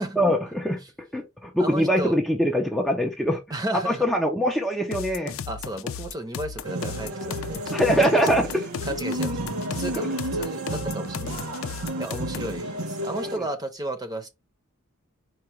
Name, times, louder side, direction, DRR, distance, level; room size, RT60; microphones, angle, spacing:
voice 1, 0.2-3.4 3.7-5.4 7.7-8.7 9.9-10.1, equal, ahead, 0.6 m, -23 dB
voice 2, 1.6-2.2 3.5-4.1 5.5-7.6 7.9-8.2 8.8-9.4 9.8-11.4 12.0-14.3, right 1 dB, 20° right, 0.8 m, -33 dB
sound 1, 4.9-12.6, left 6 dB, 70° left, 0.5 m, -35 dB
sound 2, 6.6-13.4, right 1 dB, 85° right, 1.2 m, -31 dB
4.7 x 2.4 x 4.4 m
head